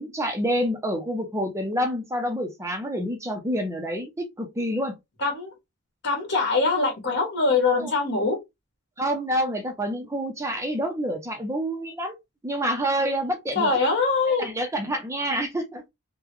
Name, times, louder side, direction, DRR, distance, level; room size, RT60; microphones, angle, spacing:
voice 1, 0.0-4.9 7.8-7.9 9.0-12.2 12.4-13.7 14.4-15.9, equal, 15° right, 0.5 m, -28 dB
voice 2, 5.2-5.5 6.0-8.4 13.5-14.5, left 3 dB, 55° left, 1.5 m, -23 dB
3.7 x 2.1 x 3.0 m
head